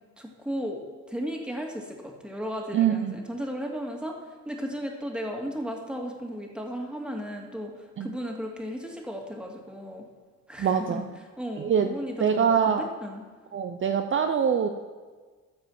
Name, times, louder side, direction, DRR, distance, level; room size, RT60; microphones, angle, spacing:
voice 1, 0.2-10.0 10.5-11.1 11.4-13.2, equal, 5° right, 0 dB, 2.1 m, -35 dB
voice 2, 2.7-3.2 8.0-8.1 10.6-11.0 11.6-11.9 12.2-12.8 13.5-14.7, right 7 dB, 40° right, 6 dB, 0.7 m, -24 dB
13.5 x 4.9 x 7.2 m, 1.4 s
cardioid pair, 90°, 30 cm